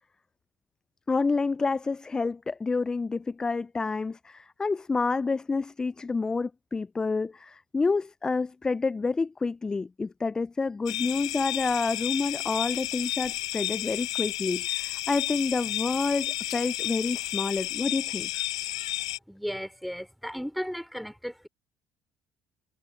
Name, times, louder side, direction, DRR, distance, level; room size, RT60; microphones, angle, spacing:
voice 1, 1.1-18.4, left 4 dB, 25° left, 0.4 m, -28 dB
sound 1, 10.9-19.2, left 14 dB, 85° left, 0.5 m, -32 dB
voice 2, 19.3-21.5, equal, ahead, 4.0 m, -35 dB
hypercardioid pair, 55°, 3 cm